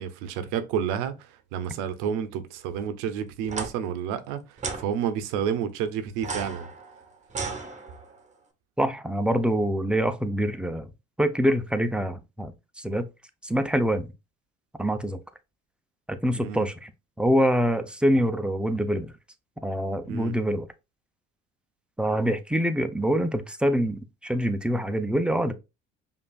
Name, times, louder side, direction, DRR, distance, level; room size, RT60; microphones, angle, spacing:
voice 1, 0.0-6.7 16.3-16.7 20.1-20.3, right 8 dB, 90° right, 0.7 m, -30 dB
sound 1, 3.4-3.7 4.6-4.8 6.2-8.2, right 4 dB, 25° right, 0.9 m, -34 dB
voice 2, 8.8-10.9 11.2-13.1 13.4-14.1 14.8-15.2 16.1-16.9 17.2-19.1 19.6-20.6 22.0-25.5, equal, 5° right, 0.5 m, -25 dB
5.2 x 2.6 x 2.3 m
supercardioid pair, 90°, 30 cm